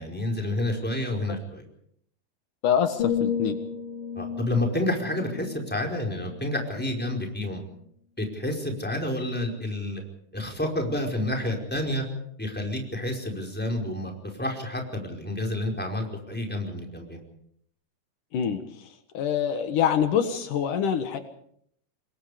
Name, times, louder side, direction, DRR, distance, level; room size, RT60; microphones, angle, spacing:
voice 1, 0.0-1.6 4.1-7.6 8.2-10.0 10.3-12.0 12.4-14.1 14.4-17.2, left 1 dB, 5° left, 1 dB, 4.7 m, -29 dB
voice 2, 2.6-3.6 18.3-21.2, left 8 dB, 75° left, 8 dB, 3.0 m, -26 dB
sound 1, 3.0-6.9 7.4-7.7, left 7 dB, 45° left, 3.7 m, -33 dB
28.0 x 22.0 x 5.1 m, 0.67 s
omnidirectional pair, 3.7 m